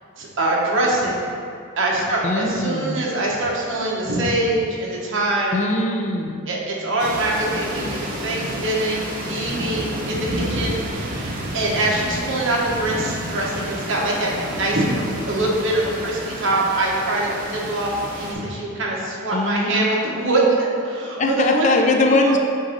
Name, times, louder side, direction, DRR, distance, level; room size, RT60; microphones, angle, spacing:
voice 1, 0.2-1.3 1.8-5.6 6.5-17.9 18.2-21.8 22.1-22.4, right 2 dB, 60° right, -3 dB, 1.1 m, -23 dB
voice 2, 2.2-3.0 5.5-6.4 19.3-19.9 21.2-22.4, left 2 dB, 35° left, 3 dB, 0.4 m, -21 dB
sound 1, 7.0-18.3, right 1 dB, 40° right, 0.7 m, -30 dB
7.8 x 2.6 x 5.2 m, 2.3 s
head